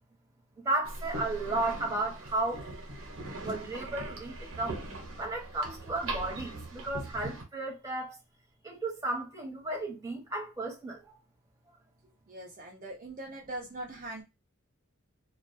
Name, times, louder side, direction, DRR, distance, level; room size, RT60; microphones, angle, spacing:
voice 1, 0.6-2.7 3.4-4.8 5.2-8.2 8.6-11.2, right 2 dB, 15° right, 1.0 m, -34 dB
sound 1, 0.8-7.4, right 2 dB, 80° right, 0.9 m, -40 dB
voice 2, 12.3-14.2, right 1 dB, 40° right, 0.6 m, -41 dB
2.4 x 2.3 x 2.5 m
head